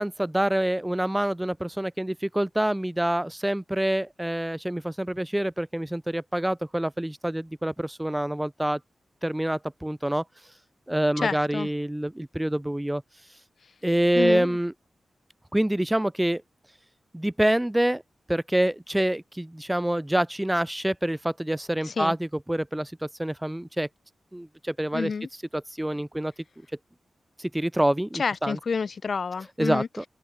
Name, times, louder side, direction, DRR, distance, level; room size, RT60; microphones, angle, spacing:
voice 1, 0.0-8.8 9.2-10.2 10.9-13.0 13.8-14.7 15.5-16.4 17.1-18.0 18.3-23.9 24.3-25.1 25.5-26.3 27.4-28.6 29.6-30.1, right 1 dB, 10° right, 1.8 m, -26 dB
voice 2, 11.2-11.7 14.1-14.6 21.8-22.1 24.9-25.3 28.1-29.9, left 5 dB, 60° left, 4.7 m, -29 dB
open air
cardioid pair, 75°, 0 cm